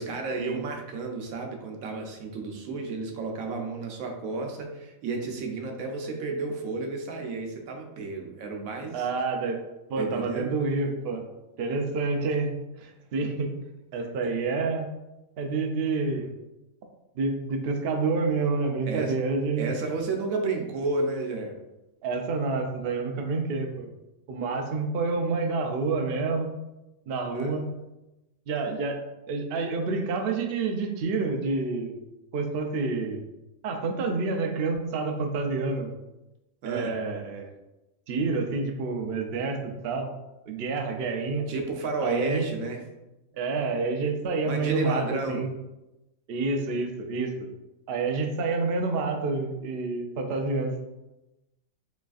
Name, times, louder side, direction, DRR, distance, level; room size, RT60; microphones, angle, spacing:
voice 1, 0.0-9.1 10.0-10.5 18.9-19.1 19.6-21.6 27.3-27.6 36.6-36.9 41.5-42.8 44.4-45.4, right 3 dB, 80° right, 2 dB, 1.1 m, -32 dB
voice 2, 8.9-9.6 9.9-11.3 11.6-12.5 12.8-13.5 13.9-14.9 15.4-16.3 17.2-19.7 22.0-23.9 24.3-26.5 27.1-27.7 28.5-29.0 29.3-31.9 32.3-33.2 33.6-35.9 36.6-37.6 38.1-40.1 40.5-41.4 42.0-42.5 43.3-45.5 46.3-47.3 47.9-50.8, right 3 dB, 60° right, 3 dB, 0.6 m, -28 dB
4.8 x 3.2 x 2.4 m, 0.98 s
omnidirectional pair, 1.4 m